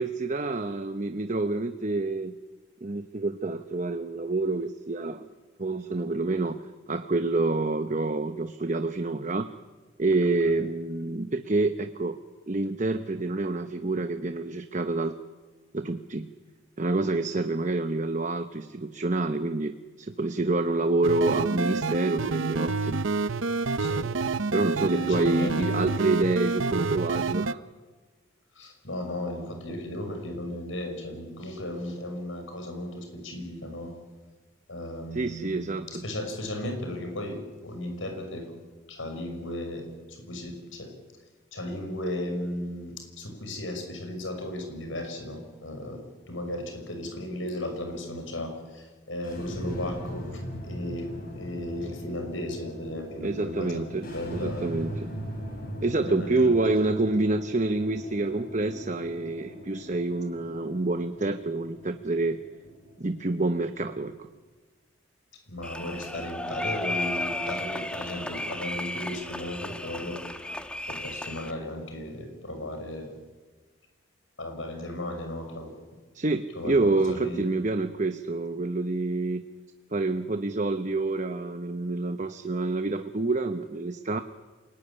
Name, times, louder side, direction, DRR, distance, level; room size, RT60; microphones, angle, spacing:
voice 1, 0.0-2.4 2.8-5.2 5.6-6.6 6.9-9.5 10.0-12.2 12.5-15.2 15.7-16.3 16.8-23.0 24.5-27.6 35.1-36.0 53.2-54.1 54.3-55.1 55.8-62.4 63.0-64.2 76.1-79.4 79.9-84.2, right 2 dB, 35° right, 8 dB, 0.9 m, -27 dB
sound 1, 21.0-27.5, right 4 dB, 75° right, 0.8 m, -28 dB
voice 2, 23.8-24.1 24.9-26.1 28.6-33.9 34.7-38.5 38.9-40.9 41.5-54.7 56.1-56.5 65.5-70.5 70.9-73.1 74.4-75.7 76.5-77.4, left 1 dB, 75° left, 5 dB, 6.0 m, -35 dB
sound 2, 49.2-64.4, equal, 45° left, 7.9 m, -40 dB
sound 3, 65.6-71.5, left 1 dB, 5° left, 1.2 m, -34 dB
27.5 x 19.0 x 9.9 m, 1.4 s
head